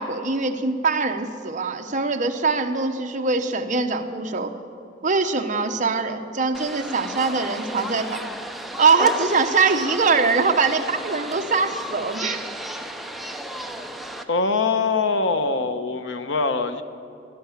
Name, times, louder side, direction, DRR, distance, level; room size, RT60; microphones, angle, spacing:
voice 1, 0.0-4.5 5.0-8.2 8.8-12.5, right 4 dB, 40° right, 6 dB, 1.0 m, -22 dB
sound 1, 6.5-14.2, right 1 dB, ahead, 0.7 m, -33 dB
voice 2, 14.3-16.8, left 4 dB, 80° left, 9 dB, 0.9 m, -23 dB
16.5 x 11.5 x 7.2 m, 2.6 s
head